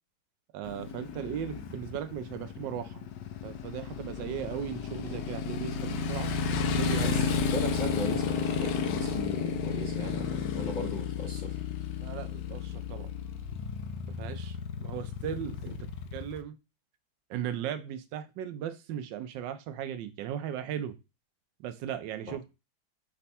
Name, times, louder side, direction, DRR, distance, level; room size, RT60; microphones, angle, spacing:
voice 1, 0.5-3.0 3.4-6.3 6.7-7.3 12.0-13.1 14.2-15.8 16.1-16.5 17.3-21.0 21.6-22.5, right 10 dB, 90° right, 10 dB, 1.3 m, -37 dB
Motorcycle, 0.6-16.4, left 6 dB, 80° left, 1.2 m, -32 dB
voice 2, 7.0-11.6 22.3-22.4, left 2 dB, 60° left, 1 dB, 0.4 m, -38 dB
5.1 x 2.2 x 4.1 m, 0.27 s
omnidirectional pair, 1.9 m